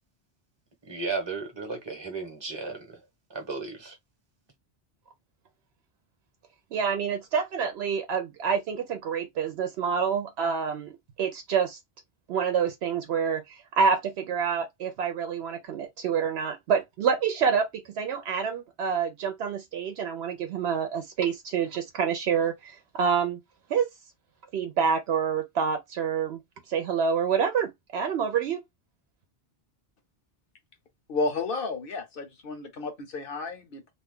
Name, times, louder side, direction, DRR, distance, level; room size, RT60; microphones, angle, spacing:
voice 1, 0.8-3.0 3.3-4.0, right 4 dB, 25° right, 0.9 m, -34 dB
voice 2, 6.7-11.8 12.3-23.4 23.7-23.9 24.5-26.4 26.7-28.6, right 6 dB, 75° right, 0.8 m, -27 dB
voice 3, 31.1-33.9, left 3 dB, 60° left, 1.0 m, -32 dB
2.7 x 2.2 x 3.5 m
omnidirectional pair, 1.1 m